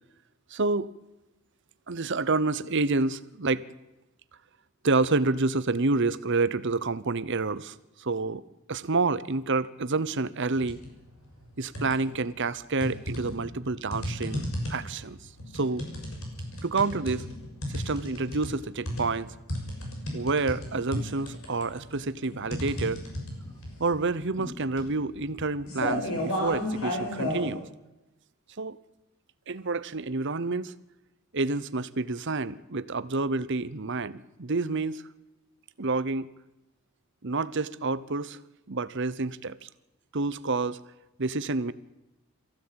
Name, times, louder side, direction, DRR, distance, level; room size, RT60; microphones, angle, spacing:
voice 1, 0.5-0.9 1.9-3.6 4.8-8.4 8.7-10.8 11.6-14.4 14.7-15.2 15.5-15.8 16.6-17.3 17.7-19.3 20.1-23.0 23.8-27.6 28.6-28.8 29.5-30.7 31.3-35.0 35.8-36.3 37.2-38.4 38.7-39.7 40.1-40.8 41.2-41.7, right 3 dB, 55° right, 15 dB, 0.9 m, -28 dB
sound 1, 10.5-10.9 11.3-12.2 12.8-27.5, left 1 dB, 70° left, 6.4 m, -33 dB
23.0 x 15.5 x 8.8 m, 0.95 s
head